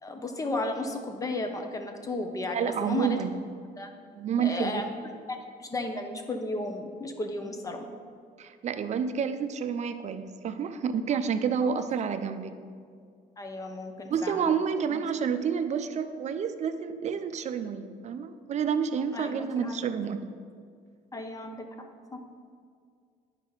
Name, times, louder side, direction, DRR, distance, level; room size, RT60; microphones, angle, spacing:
voice 1, 0.0-3.2 3.8-3.9 4.4-4.9 5.3-7.9 11.6-11.8 13.4-14.6 14.9-15.1 19.1-19.9 21.1-21.9, left 2 dB, 20° left, 5 dB, 0.8 m, -34 dB
voice 2, 2.5-3.4 4.1-4.8 8.4-12.5 14.1-20.3, right 7 dB, 45° right, 9 dB, 0.5 m, -29 dB
9.9 x 5.3 x 4.0 m, 2.1 s
cardioid pair, 110°, 17 cm